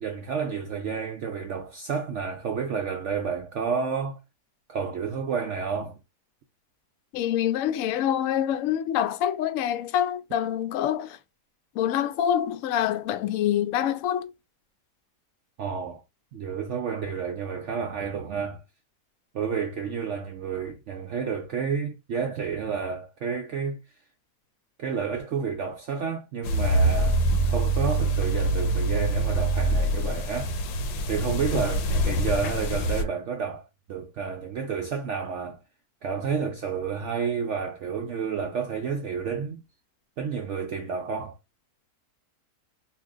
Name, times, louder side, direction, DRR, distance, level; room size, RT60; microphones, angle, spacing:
voice 1, 0.0-4.2 4.7-6.0 15.6-16.0 16.3-18.6 19.3-23.8 24.8-30.5 31.1-35.6 36.0-39.6 40.2-41.4, right 6 dB, 75° right, 0.6 m, -30 dB
voice 2, 7.1-11.2 11.8-14.3, left 10 dB, 70° left, 0.8 m, -26 dB
sound 1, 26.4-33.0, right 1 dB, 90° left, 1.2 m, -25 dB
2.9 x 2.5 x 3.5 m
omnidirectional pair, 1.8 m